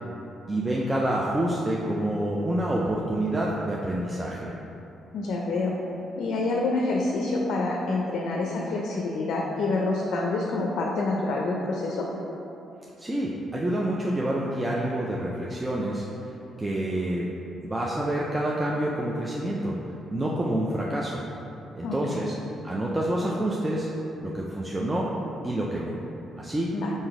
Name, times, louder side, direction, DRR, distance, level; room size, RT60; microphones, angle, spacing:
voice 1, 0.5-4.5 13.0-16.0 16.6-17.3 17.6-19.8 20.1-21.2 21.8-22.3 22.6-23.9 24.2-25.1 25.4-26.0 26.4-26.7, right 1 dB, 15° right, -4 dB, 0.4 m, -27 dB
voice 2, 5.1-5.8 6.2-12.1 21.8-22.3 26.7-26.9, left 3 dB, 70° left, -1 dB, 0.4 m, -27 dB
3.8 x 2.6 x 4.7 m, 2.9 s
cardioid pair, 90°, 0 cm